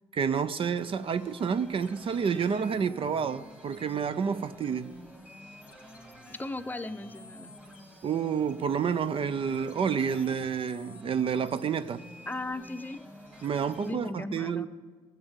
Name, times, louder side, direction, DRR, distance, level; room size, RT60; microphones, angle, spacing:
voice 1, 0.1-4.9 8.0-12.0 13.4-14.7, right 7 dB, 45° right, 0.5 m, -29 dB
sound 1, 0.8-13.9, equal, 10° right, 2.9 m, -50 dB
voice 2, 6.3-7.5 12.3-13.0 13.8-14.7, left 2 dB, 15° left, 0.7 m, -37 dB
14.5 x 8.1 x 8.1 m
cardioid pair, 75°, 12 cm